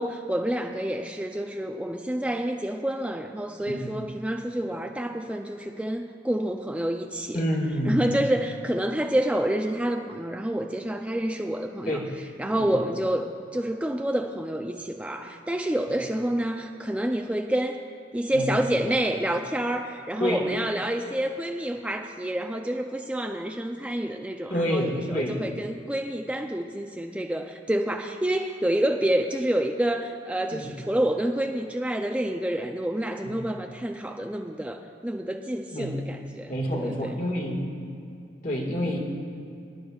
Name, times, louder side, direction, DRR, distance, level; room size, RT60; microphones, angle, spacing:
voice 1, 0.0-7.4 7.8-12.0 12.4-13.3 13.5-17.8 18.1-37.1, right 1 dB, 5° right, 3 dB, 0.4 m, -28 dB
voice 2, 7.3-8.1 11.9-12.1 12.5-12.7 18.3-18.6 20.2-20.4 24.5-25.4 30.5-30.7 33.2-33.3 35.7-35.9 36.5-37.6 38.4-39.0, equal, 50° left, -1 dB, 1.7 m, -28 dB
23.5 x 11.0 x 2.4 m, 2.7 s
head